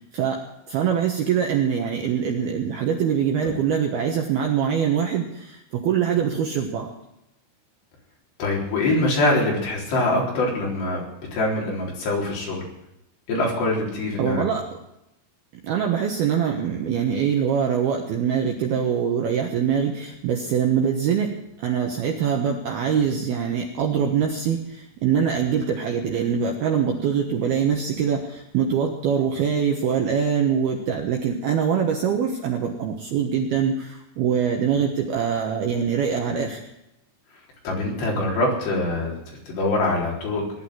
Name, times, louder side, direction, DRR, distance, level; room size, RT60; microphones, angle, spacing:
voice 1, 0.7-6.9 14.2-14.7 15.6-36.6, right 7 dB, 70° right, 1 dB, 2.5 m, -23 dB
voice 2, 8.4-11.0 11.3-12.7 13.3-14.4 37.6-40.6, left 2 dB, 55° left, -3 dB, 5.9 m, -24 dB
19.0 x 12.0 x 6.3 m, 0.85 s
omnidirectional pair, 5.9 m